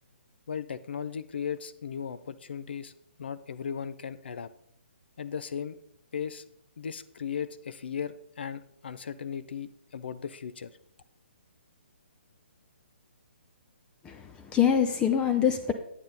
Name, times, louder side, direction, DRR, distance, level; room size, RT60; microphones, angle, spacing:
voice 1, 0.5-2.9 3.2-4.5 5.2-5.8 6.1-6.4 6.8-10.7, left 7 dB, 60° left, 14 dB, 0.5 m, -36 dB
voice 2, 14.0-15.7, left 8 dB, 15° left, 6 dB, 0.6 m, -25 dB
8.9 x 8.6 x 3.9 m, 0.73 s
figure-of-eight pair, 135°, 6 cm